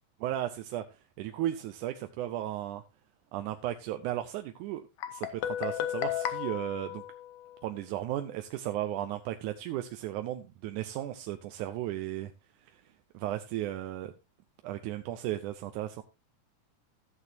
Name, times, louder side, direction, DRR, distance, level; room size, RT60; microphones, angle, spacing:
voice 1, 0.2-2.8 3.3-7.0 7.6-12.3 12.7-12.8 13.1-14.1 14.6-16.0, right 13 dB, 80° right, 2.1 m, -35 dB
Guitar, 5.0-7.8, left 11 dB, 75° left, 2.3 m, -34 dB
14.0 x 8.2 x 2.7 m
omnidirectional pair, 3.5 m